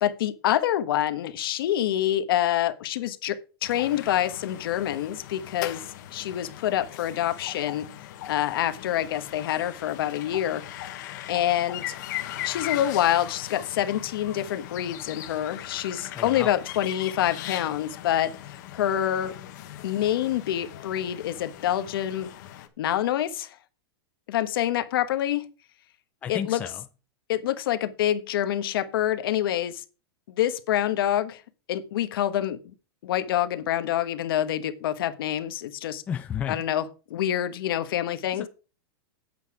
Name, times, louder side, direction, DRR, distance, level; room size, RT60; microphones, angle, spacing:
voice 1, 0.0-5.8 6.1-7.9 8.3-10.6 11.3-11.9 12.4-19.3 19.8-22.3 22.8-23.6 24.3-25.5 26.3-26.6 27.3-29.8 30.3-31.4 31.7-32.7 33.0-36.0 36.5-38.5, left 12 dB, 65° left, 1.2 m, -26 dB
sound 1, 3.6-22.7, left 13 dB, 45° left, 1.3 m, -39 dB
voice 2, 16.1-16.5 26.2-26.7 36.1-36.6, left 8 dB, 10° left, 0.4 m, -32 dB
9.1 x 8.3 x 4.8 m
supercardioid pair, 175°, 13 cm